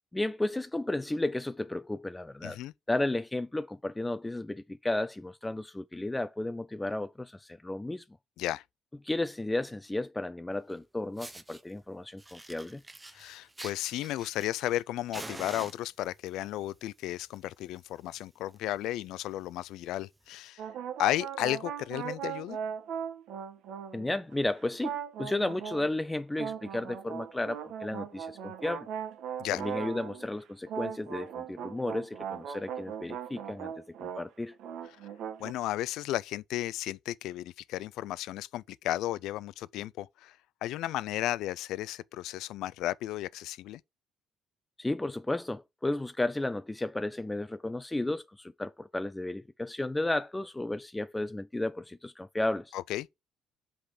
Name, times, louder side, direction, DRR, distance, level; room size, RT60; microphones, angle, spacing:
voice 1, 0.1-2.6 2.9-8.0 9.0-12.8 23.9-28.9 29.5-33.7 34.0-34.6 44.8-52.8, left 2 dB, 10° left, 0.4 m, -33 dB
voice 2, 2.4-2.7 8.4-8.6 13.1-20.6 21.0-22.6 29.4-29.6 35.4-43.8 52.7-53.1, left 14 dB, 80° left, 0.4 m, -34 dB
Fire, 10.7-10.8 11.2-11.6 12.2-14.8 15.1-16.3 17.1-17.4 17.7-17.8 18.2-18.3 18.5-18.8 19.3-19.4 20.3-20.4, right 2 dB, 10° right, 0.7 m, -45 dB
sound 1, 20.6-24.3 24.8-25.9 26.4-30.3 30.7-34.3 34.5-35.5, right 8 dB, 75° right, 1.3 m, -39 dB
5.7 x 5.0 x 6.5 m
cardioid pair, 125°, 0 cm